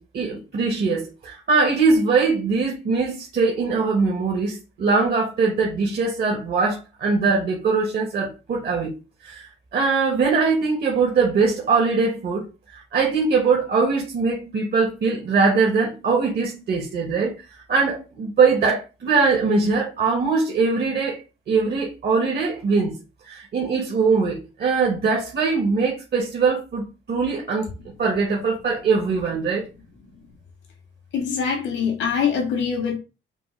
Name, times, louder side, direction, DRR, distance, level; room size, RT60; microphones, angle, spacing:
voice 1, 0.0-8.9 9.2-12.5 12.7-17.3 17.7-21.2 21.5-23.0 23.2-27.7 28.0-29.7, right 4 dB, 55° right, 1.2 m, -21 dB
voice 2, 31.1-33.0, left 6 dB, 85° left, 1.9 m, -23 dB
5.3 x 2.2 x 4.4 m
cardioid pair, 90°, 20 cm